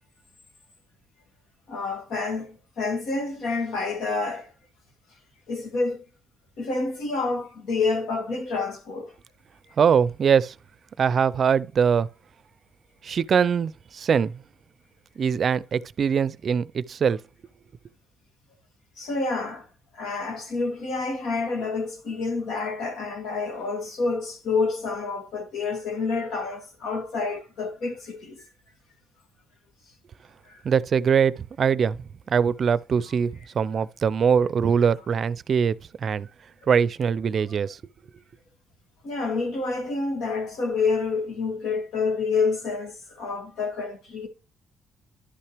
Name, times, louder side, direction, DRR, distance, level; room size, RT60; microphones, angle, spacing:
voice 1, 1.7-4.5 5.5-6.0 6.6-9.1 19.0-19.6 20.0-28.4 30.5-30.6 39.0-44.3, left 4 dB, 80° left, 2.3 m, -28 dB
voice 2, 9.8-10.5 11.0-12.1 13.0-14.3 15.2-17.2 30.6-32.0 32.3-36.3 36.7-37.8, right 7 dB, 50° right, 0.4 m, -22 dB
11.0 x 5.7 x 3.4 m
cardioid pair, 90°, 0 cm